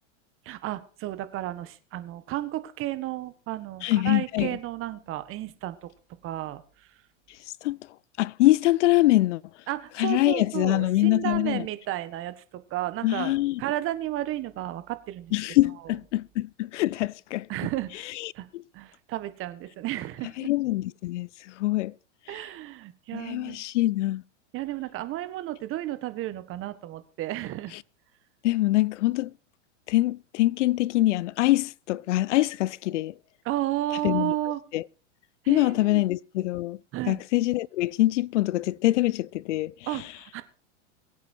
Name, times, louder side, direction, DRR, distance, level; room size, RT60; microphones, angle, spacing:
voice 1, 0.4-5.9 6.2-6.6 9.7-15.3 17.5-18.1 18.3-18.5 18.7-20.5 22.3-23.6 24.5-27.8 33.4-34.6 35.4-36.0 36.9-37.2 39.9-40.4, right 14 dB, 35° right, 1.5 m, -33 dB
voice 2, 3.8-4.6 7.6-7.8 8.2-9.4 10.0-11.7 13.0-13.6 15.3-17.5 18.2-18.6 20.4-21.9 22.3-22.4 23.1-24.2 28.4-29.3 29.9-33.1 34.0-34.3 34.7-34.8 35.5-36.8 37.1-40.0, left 17 dB, 75° left, 0.5 m, -24 dB
22.0 x 8.5 x 4.5 m
hypercardioid pair, 125°, 37 cm